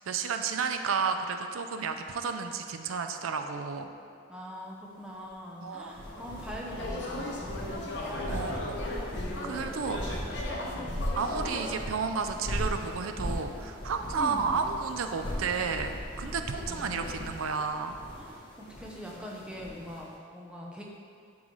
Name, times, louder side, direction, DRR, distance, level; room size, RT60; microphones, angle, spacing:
voice 1, 0.1-3.9 5.6-6.0 8.3-8.9 9.4-10.2 11.2-18.0, right 5 dB, 85° right, 6 dB, 0.4 m, -32 dB
voice 2, 4.3-8.7 9.2-9.5 10.0-10.1 10.6-11.2 14.2-14.6 16.2-16.4 16.7-17.3 18.1-20.8, equal, 5° right, -3 dB, 0.6 m, -43 dB
sound 1, 5.8-20.0, equal, 25° left, 1.1 m, -38 dB
sound 2, 6.1-11.8, left 1 dB, 55° left, 0.9 m, -37 dB
11.0 x 3.8 x 3.1 m, 2.3 s
head